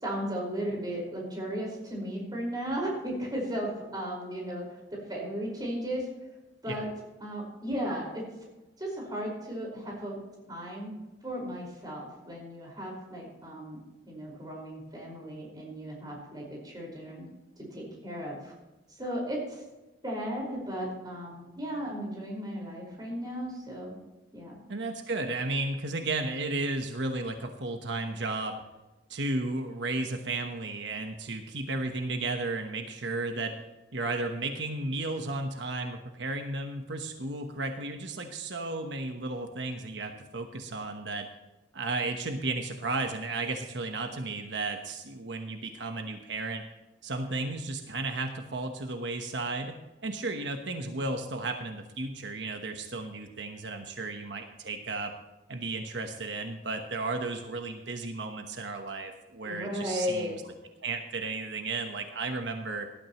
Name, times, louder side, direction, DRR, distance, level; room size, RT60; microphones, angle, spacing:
voice 1, 0.0-4.6 4.9-6.1 6.6-6.9 7.2-8.2 8.8-10.2 10.5-10.9 11.2-13.8 14.0-17.2 17.7-18.5 19.0-19.6 20.0-23.9 24.3-24.6 59.4-60.4, equal, 25° right, -2 dB, 5.0 m, -35 dB
voice 2, 24.7-28.6 29.1-33.6 33.9-41.3 41.7-46.6 47.0-49.8 50.0-55.1 55.5-60.4 60.8-62.9, right 2 dB, 85° right, 5 dB, 1.1 m, -34 dB
18.0 x 12.5 x 3.0 m, 1.1 s
head